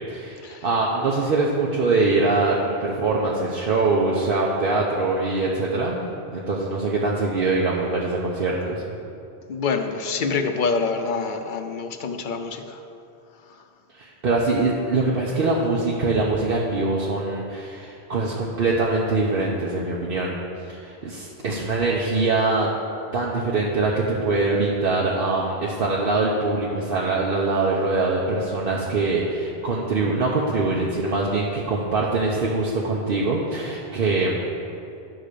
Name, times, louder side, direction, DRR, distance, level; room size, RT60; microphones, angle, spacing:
voice 1, 0.1-8.8 13.9-20.4 20.7-22.7 23.1-34.4, right 3 dB, 60° right, -4 dB, 1.0 m, -23 dB
voice 2, 9.5-12.8, left 4 dB, 55° left, 7 dB, 0.7 m, -26 dB
11.0 x 3.9 x 6.6 m, 2.6 s
omnidirectional pair, 1.1 m